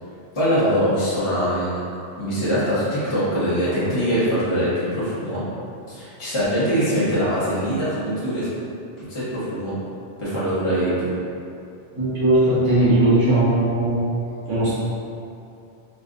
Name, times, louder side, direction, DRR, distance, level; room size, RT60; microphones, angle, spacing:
voice 1, 0.3-1.8 2.2-5.4 5.9-8.5 9.1-9.7 10.2-11.1, equal, 25° left, -11 dB, 0.9 m, -22 dB
voice 2, 11.9-14.0 14.5-14.7, right 1 dB, 85° right, -10 dB, 1.5 m, -18 dB
3.9 x 2.5 x 2.5 m, 2.7 s
omnidirectional pair, 1.3 m